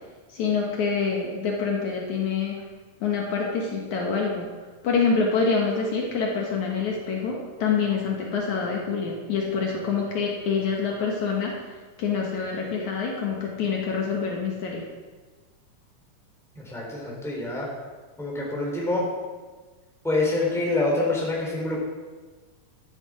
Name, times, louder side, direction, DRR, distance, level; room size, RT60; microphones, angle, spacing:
voice 1, 0.3-2.6 3.0-4.5 4.8-11.5 12.0-14.9, left 5 dB, 65° left, -1 dB, 2.7 m, -26 dB
voice 2, 16.5-17.7 18.2-19.0 20.0-21.8, left 2 dB, ahead, -3 dB, 3.3 m, -26 dB
12.5 x 10.5 x 5.0 m, 1.3 s
omnidirectional pair, 3.8 m